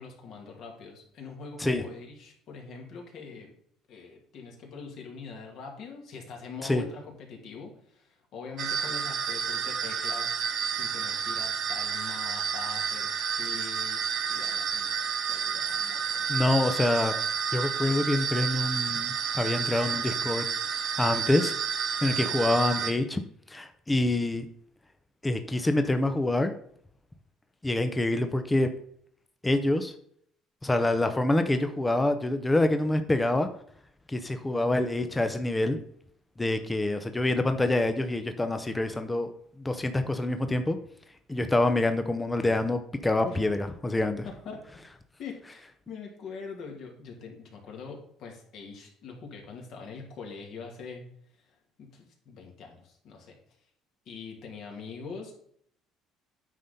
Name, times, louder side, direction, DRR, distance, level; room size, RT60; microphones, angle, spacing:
voice 1, 0.0-3.5 3.9-14.0 14.3-16.4 43.2-43.4 44.2-44.8 45.2-51.0 51.5-53.4 54.1-55.3, left 5 dB, 60° left, 1 dB, 2.4 m, -43 dB
sound 1, 8.6-22.9, right 7 dB, 45° right, 1.1 m, -30 dB
voice 2, 16.3-17.1 17.5-20.4 21.0-21.6 22.0-23.2 23.5-24.5 25.2-26.5 27.6-28.7 29.4-29.9 30.6-33.5 34.1-35.8 36.4-39.3 39.6-40.8 41.3-44.3, left 2 dB, 10° left, 8 dB, 0.6 m, -26 dB
9.2 x 4.2 x 5.2 m, 0.65 s
cardioid pair, 135°, 0 cm